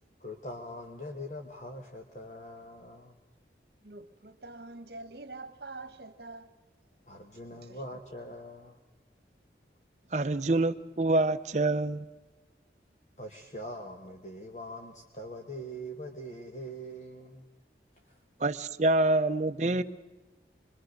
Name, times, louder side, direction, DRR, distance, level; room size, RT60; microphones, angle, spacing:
voice 1, 0.2-3.1 7.1-8.8 13.2-17.4, equal, 40° left, 1.3 m, -42 dB
voice 2, 3.8-6.5 7.5-7.8, right 2 dB, 65° right, 1.3 m, -45 dB
voice 3, 10.1-12.0 18.4-19.8, right 2 dB, 40° right, 0.7 m, -26 dB
25.5 x 22.0 x 6.5 m
head